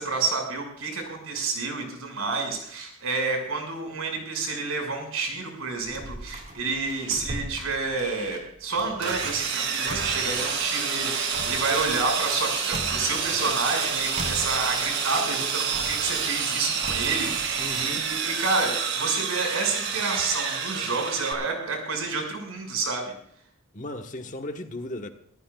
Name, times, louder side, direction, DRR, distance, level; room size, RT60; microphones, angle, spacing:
voice 1, 0.0-23.0, right 3 dB, 85° right, 5.9 m, -29 dB
sound 1, 5.8-9.5 9.9-12.5 12.7-15.4 15.7-18.2 18.6-18.7, right 1 dB, 35° right, 3.0 m, -39 dB
Sawing, 9.0-21.3, right 6 dB, 60° right, 2.6 m, -28 dB
voice 2, 17.6-18.0 23.7-25.1, left 1 dB, 40° left, 1.3 m, -36 dB
25.5 x 14.5 x 2.4 m
head